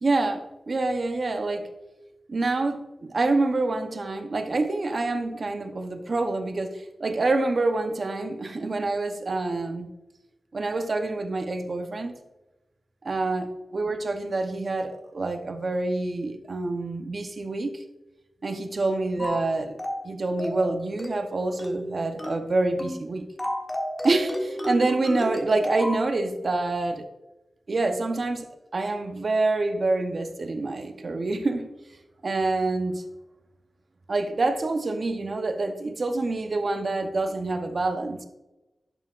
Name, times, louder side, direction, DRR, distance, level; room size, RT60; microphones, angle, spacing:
voice 1, 0.0-1.7 2.3-9.9 10.5-12.2 13.0-17.8 18.4-19.8 20.0-23.2 24.0-27.1 27.7-28.5 28.7-31.7 32.2-33.0 34.1-38.2, right 2 dB, 55° right, 0.8 m, -27 dB
sound 1, 19.2-19.5 19.8-20.1 20.4-20.7 21.0-21.3 21.6-21.9 22.2-22.5 22.8-23.0 23.4-26.0, equal, 20° left, 1.3 m, -31 dB
11.0 x 5.9 x 2.5 m
wide cardioid pair, 85°, 0 cm